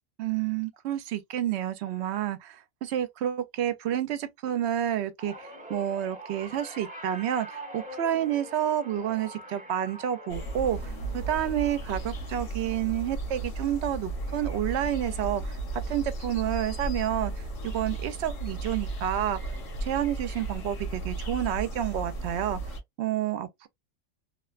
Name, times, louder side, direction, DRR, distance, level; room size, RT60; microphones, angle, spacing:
voice 1, 0.2-15.6 15.9-17.3 17.6-19.4 19.8-23.7, right 11 dB, 65° right, 0.8 m, -29 dB
sound 1, 5.2-15.6 16.0-16.4 17.5-17.6, right 1 dB, 10° right, 0.5 m, -46 dB
sound 2, 10.3-22.8, right 2 dB, 75° left, 1.3 m, -35 dB
2.7 x 2.1 x 2.3 m
omnidirectional pair, 1.3 m